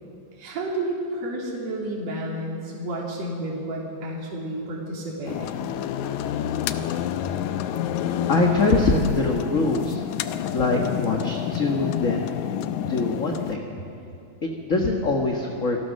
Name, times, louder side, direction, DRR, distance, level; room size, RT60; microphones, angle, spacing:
voice 1, 0.4-5.7, right 1 dB, 60° right, -3 dB, 4.2 m, -31 dB
sound 1, 5.2-13.6, left 10 dB, 90° left, 2.2 m, -28 dB
voice 2, 8.3-10.0 10.5-12.3 12.6-13.6 14.4-15.8, left 3 dB, 35° left, 1 dB, 1.4 m, -23 dB
28.0 x 19.0 x 6.4 m, 2.7 s
omnidirectional pair, 3.4 m